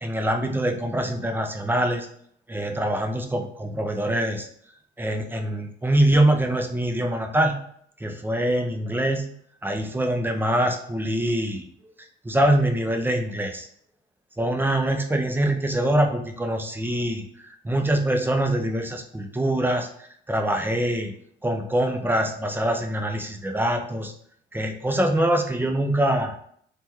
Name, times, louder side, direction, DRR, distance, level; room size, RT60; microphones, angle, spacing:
voice 1, 0.0-2.1 2.5-4.5 5.0-7.5 8.0-9.2 9.6-11.6 12.2-13.7 14.4-19.9 20.3-21.1 21.4-24.1 24.5-26.3, right 1 dB, 10° right, 4 dB, 0.4 m, -24 dB
3.3 x 2.2 x 2.9 m, 0.64 s
cardioid pair, 90°, 20 cm